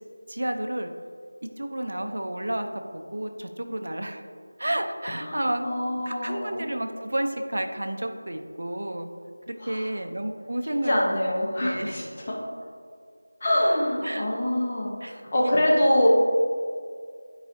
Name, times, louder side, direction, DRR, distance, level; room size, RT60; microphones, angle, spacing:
voice 1, 0.3-0.9 1.6-2.7 2.9-4.2 4.6-5.7 6.0-9.1 9.5-11.0 11.6-12.0 14.0-14.3 15.0-15.5, right 1 dB, 55° right, 5 dB, 0.6 m, -31 dB
voice 2, 5.2-6.7 9.6-9.8 10.9-12.4 13.4-16.1, left 1 dB, 20° left, -4 dB, 0.7 m, -25 dB
9.1 x 4.8 x 2.6 m, 2.2 s
figure-of-eight pair, 180°, 0 cm